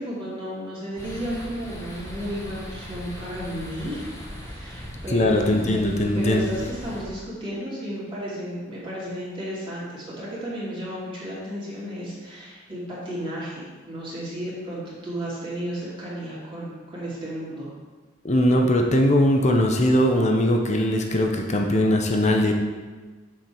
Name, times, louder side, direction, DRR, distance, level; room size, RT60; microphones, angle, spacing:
voice 1, 0.0-4.1 4.4-5.6 6.1-17.7, equal, 25° right, -8 dB, 2.7 m, -33 dB
sound 1, 1.0-7.0, equal, 15° left, 1.3 m, -38 dB
voice 2, 5.1-6.4 18.2-22.6, left 1 dB, 35° left, 2 dB, 0.8 m, -20 dB
7.4 x 5.5 x 6.3 m, 1.4 s
head